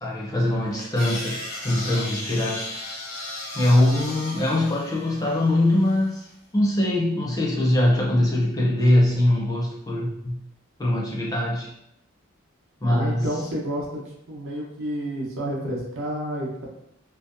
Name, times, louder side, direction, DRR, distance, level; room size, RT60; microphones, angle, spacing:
voice 1, 0.0-3.0 3.5-6.3 6.5-10.4 10.8-11.7 12.8-13.3, left 1 dB, 15° left, -3 dB, 0.4 m, -22 dB
sound 1, 0.8-6.1, left 2 dB, 80° left, 0.6 m, -36 dB
voice 2, 12.9-14.0 14.3-16.7, equal, 70° right, -2 dB, 0.6 m, -30 dB
2.6 x 2.1 x 2.4 m, 0.78 s
head